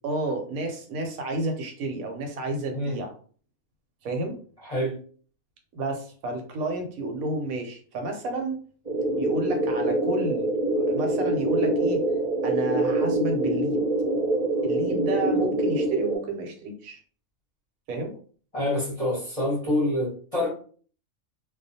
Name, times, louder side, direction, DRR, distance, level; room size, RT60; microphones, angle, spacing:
voice 1, 0.0-3.1 4.0-4.4 5.7-8.6 9.2-12.0 12.4-13.8 14.6-17.0 17.9-18.1, right 2 dB, 80° right, 3 dB, 1.1 m, -31 dB
voice 2, 4.6-5.0 18.5-20.5, left 1 dB, 30° left, -6 dB, 0.7 m, -26 dB
sound 1, 8.8-16.2, right 2 dB, 40° right, 0.7 m, -25 dB
2.4 x 2.1 x 2.6 m, 0.43 s
omnidirectional pair, 1.5 m